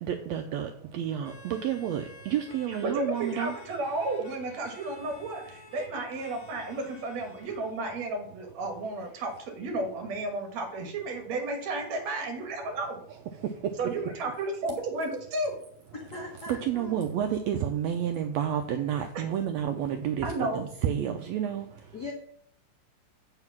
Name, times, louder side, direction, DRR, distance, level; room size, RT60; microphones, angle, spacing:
voice 1, 0.0-3.5 14.0-14.1 16.5-21.7, right 9 dB, 90° right, 6 dB, 1.5 m, -30 dB
sound 1, 1.2-8.1, left 2 dB, 55° left, 1.8 m, -52 dB
voice 2, 2.7-13.0 13.8-15.5 19.2-19.3 20.2-20.6, right 2 dB, 60° right, 4 dB, 2.4 m, -33 dB
voice 3, 16.1-17.0 21.9-22.1, left 2 dB, 75° left, 0 dB, 0.9 m, -39 dB
7.8 x 4.9 x 5.9 m, 0.63 s
omnidirectional pair, 3.7 m